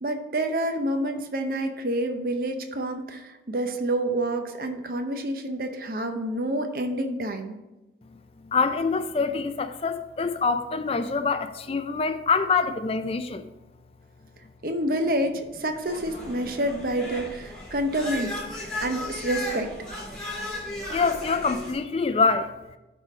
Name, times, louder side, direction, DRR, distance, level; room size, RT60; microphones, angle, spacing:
voice 1, 0.0-7.5 14.6-18.4 18.8-19.7, right 1 dB, 50° right, 0.7 m, -28 dB
voice 2, 8.4-13.5 20.9-22.5, left 4 dB, 30° left, 0.4 m, -25 dB
sound 1, 15.8-21.7, left 2 dB, 5° left, 2.5 m, -35 dB
10.5 x 3.8 x 4.9 m
head